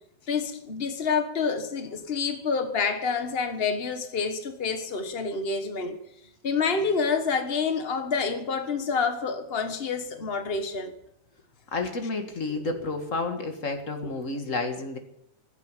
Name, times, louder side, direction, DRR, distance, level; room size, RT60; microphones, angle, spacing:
voice 1, 0.3-6.0 6.4-10.9, left 5 dB, 80° left, 0.5 m, -28 dB
voice 2, 11.7-15.0, left 3 dB, 30° left, 1.7 m, -30 dB
16.0 x 8.5 x 9.0 m
omnidirectional pair, 3.3 m